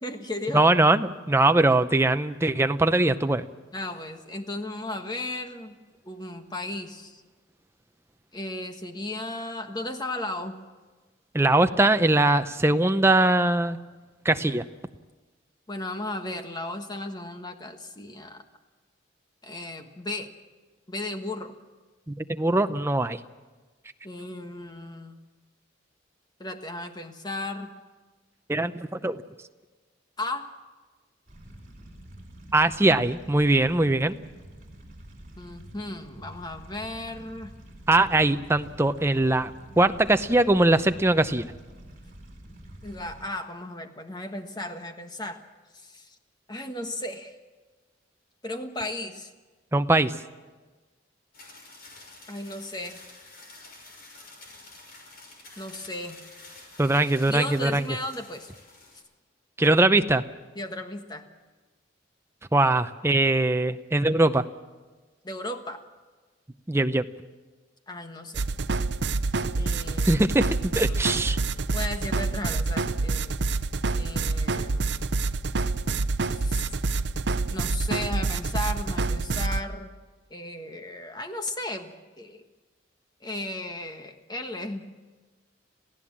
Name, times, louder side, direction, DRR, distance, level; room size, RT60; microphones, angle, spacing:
voice 1, 0.0-0.6 3.7-5.8 6.0-7.2 8.3-10.6 15.7-18.4 19.4-20.3 20.9-21.5 24.0-25.2 26.4-27.7 30.2-30.5 35.4-37.5 42.8-45.4 45.7-46.2 46.5-47.3 48.4-49.3 52.3-53.0 55.6-56.2 57.3-58.5 60.5-61.3 65.2-65.8 67.9-68.4 69.6-70.2 70.9-71.3 71.7-73.4 73.9-74.9 76.3-76.7 77.5-79.9 80.3-82.4 83.2-84.8, left 1 dB, 20° left, 6 dB, 1.4 m, -35 dB
voice 2, 0.5-3.4 11.3-13.8 14.2-14.6 22.1-23.2 28.5-29.2 32.5-34.2 37.9-39.5 39.8-41.5 49.7-50.1 56.8-57.8 59.6-60.2 62.5-64.4 66.7-67.1 70.1-71.4, right 2 dB, 15° right, 9 dB, 0.6 m, -21 dB
sound 1, 31.3-43.2, right 1 dB, 40° right, 4.3 m, -47 dB
sound 2, 51.3-59.0, left 2 dB, 50° left, 6.0 m, -49 dB
sound 3, 68.3-79.6, right 3 dB, 60° right, 0.7 m, -27 dB
27.0 x 16.0 x 7.4 m, 1.3 s
head